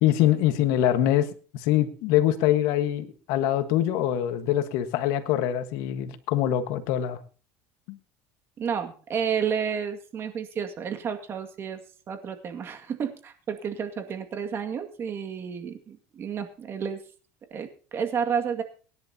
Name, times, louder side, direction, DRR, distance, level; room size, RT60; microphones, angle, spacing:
voice 1, 0.0-7.2 7.9-8.0, left 12 dB, 75° left, 9 dB, 1.5 m, -24 dB
voice 2, 8.6-11.8 12.1-17.0 17.5-18.6, right 7 dB, 40° right, 6 dB, 2.1 m, -31 dB
24.5 x 10.5 x 2.9 m, 0.38 s
supercardioid pair, 110°, 6 cm